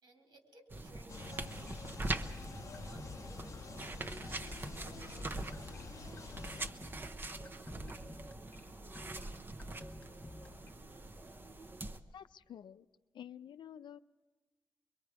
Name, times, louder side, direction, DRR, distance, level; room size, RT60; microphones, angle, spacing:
voice 1, 0.0-2.0 2.8-6.8, right 1 dB, 85° right, 1 dB, 3.7 m, -61 dB
sound 1, 0.7-12.0, right 2 dB, 25° right, 0.8 m, -43 dB
sound 2, 1.1-6.7, left 5 dB, 40° left, 0.6 m, -49 dB
sound 3, 1.2-10.7, left 2 dB, 20° left, 1.1 m, -54 dB
voice 2, 12.1-12.9 13.1-14.0, left 9 dB, 85° left, 13 dB, 0.5 m, -50 dB
25.0 x 23.0 x 4.8 m, 1.4 s
wide cardioid pair, 160°, 8 cm